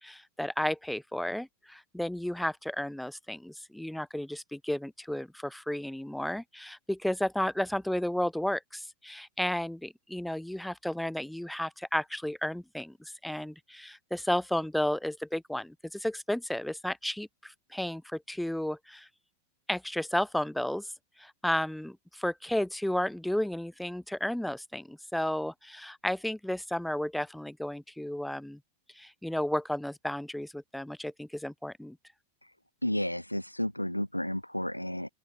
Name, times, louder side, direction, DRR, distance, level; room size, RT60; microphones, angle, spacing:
voice 1, 0.0-19.1 19.7-20.9 21.2-28.6 29.0-32.0, left 1 dB, ahead, 0.8 m, -33 dB
voice 2, 32.8-35.1, left 1 dB, 90° left, 0.9 m, -32 dB
open air
figure-of-eight pair, 90°, 0 cm